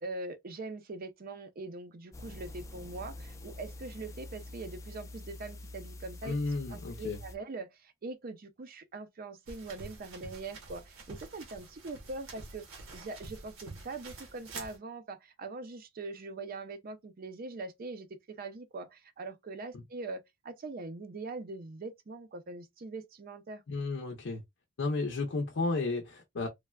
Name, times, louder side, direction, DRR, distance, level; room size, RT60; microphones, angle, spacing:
voice 1, 0.0-6.4 6.7-23.6, right 3 dB, 50° right, 0.5 m, -42 dB
sound 1, 2.1-7.4, left 2 dB, 15° left, 0.4 m, -46 dB
voice 2, 6.2-7.2 19.7-19.8 23.7-24.4 24.8-26.5, left 3 dB, 65° left, 0.5 m, -33 dB
sound 2, 9.5-14.8, right 3 dB, 80° right, 1.0 m, -47 dB
3.2 x 2.1 x 2.2 m
head